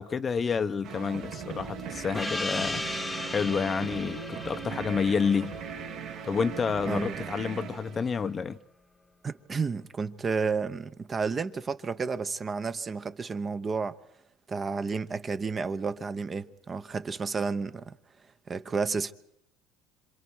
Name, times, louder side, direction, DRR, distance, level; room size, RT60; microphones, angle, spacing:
voice 1, 0.0-2.8 3.3-5.6 6.2-8.6, left 6 dB, 25° left, 0.8 m, -29 dB
sound 1, 0.8-8.6, right 8 dB, 65° right, 2.8 m, -39 dB
Gong, 2.1-7.2, left 2 dB, 10° left, 1.1 m, -37 dB
voice 2, 6.9-7.3 9.2-14.0 14.5-17.9 18.5-19.1, right 4 dB, 25° right, 0.9 m, -31 dB
27.0 x 26.5 x 4.7 m
cardioid pair, 130°, 0 cm